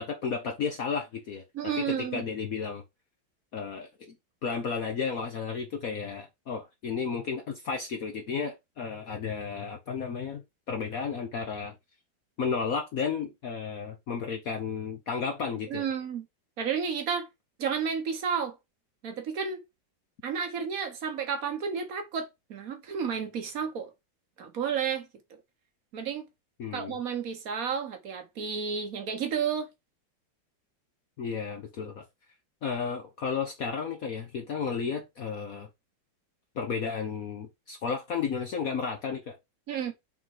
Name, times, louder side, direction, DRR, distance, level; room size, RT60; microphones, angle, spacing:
voice 1, 0.0-1.4 1.8-2.8 3.5-4.1 4.4-10.4 10.7-11.7 12.4-15.9 26.6-27.0 31.2-32.0 32.6-35.7 36.5-39.4, left 5 dB, 55° left, 1.2 m, -33 dB
voice 2, 1.5-2.2 15.7-16.2 16.6-17.3 17.6-18.5 19.0-19.6 20.2-23.9 24.4-25.1 25.9-26.3 26.7-29.7 39.7-39.9, right 7 dB, 50° right, 1.5 m, -31 dB
5.4 x 3.8 x 4.7 m
omnidirectional pair, 2.0 m